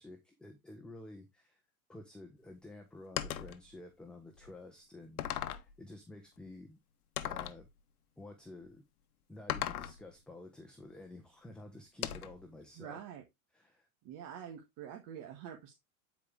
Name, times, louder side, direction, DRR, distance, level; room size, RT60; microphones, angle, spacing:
voice 1, 0.0-1.6 1.9-6.8 7.2-7.7 8.2-8.8 9.3-13.0 13.5-13.9, left 2 dB, ahead, 4 dB, 1.2 m, -51 dB
sound 1, 3.2-3.6 4.4-4.5 5.2-5.7 7.2-7.6 9.5-10.0 12.0-12.4, left 12 dB, 90° left, 1.0 m, -37 dB
voice 2, 12.8-13.2 14.0-15.7, right 9 dB, 45° right, 3 dB, 1.7 m, -46 dB
9.2 x 5.0 x 3.5 m, 0.19 s
supercardioid pair, 130°, 43 cm